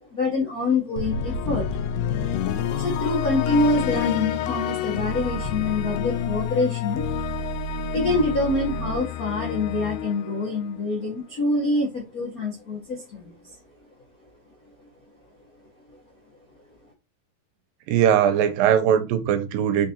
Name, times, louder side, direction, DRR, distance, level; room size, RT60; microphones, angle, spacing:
voice 1, 0.0-1.6 2.0-2.1 2.7-7.0 7.9-13.6 15.9-16.0, left 2 dB, 65° left, 0.8 m, -26 dB
sound 1, 1.0-11.1, left 7 dB, 80° left, 1.8 m, -28 dB
voice 2, 17.9-19.9, right 9 dB, 90° right, 2.4 m, -20 dB
5.3 x 3.7 x 2.7 m
omnidirectional pair, 4.0 m